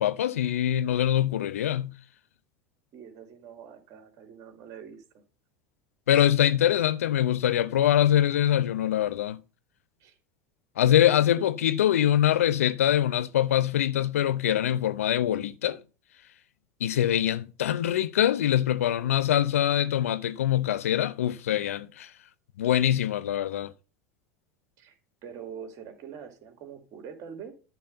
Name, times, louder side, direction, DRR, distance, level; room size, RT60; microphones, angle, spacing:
voice 1, 0.0-1.9 6.1-9.4 10.8-15.8 16.8-22.1 22.6-23.7, left 11 dB, 85° left, 0.6 m, -24 dB
voice 2, 2.9-5.2 10.0-10.2 11.0-11.5 24.8-27.5, right 7 dB, 50° right, 2.9 m, -44 dB
10.5 x 4.3 x 7.9 m
hypercardioid pair, 85°, 7 cm